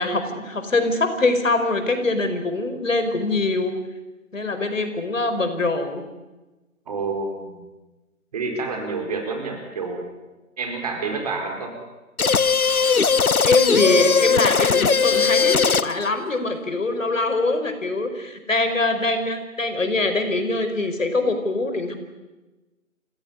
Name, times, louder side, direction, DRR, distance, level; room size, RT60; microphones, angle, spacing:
voice 1, 0.0-3.7 4.3-6.0 13.4-22.0, left 2 dB, 60° left, 7 dB, 5.1 m, -23 dB
voice 2, 6.9-7.6 8.3-10.1 10.6-11.7, right 4 dB, 25° right, 3 dB, 4.6 m, -28 dB
sound 1, 12.2-16.1, left 5 dB, 85° left, 1.0 m, -19 dB
29.0 x 18.0 x 9.9 m, 1.1 s
figure-of-eight pair, 160°, 42 cm